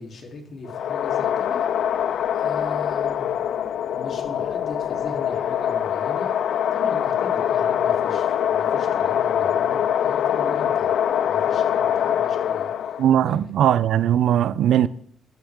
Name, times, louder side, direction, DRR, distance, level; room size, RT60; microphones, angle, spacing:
voice 1, 0.0-1.7 2.3-3.6 3.9-6.3 6.7-10.9 11.2-13.0 13.2-13.4, left 2 dB, 55° left, 3.5 m, -39 dB
sound 1, 0.7-13.1, left 9 dB, 70° left, 0.5 m, -23 dB
voice 2, 13.0-14.9, right 10 dB, 75° right, 0.6 m, -19 dB
13.0 x 12.5 x 3.8 m
cardioid pair, 90°, 0 cm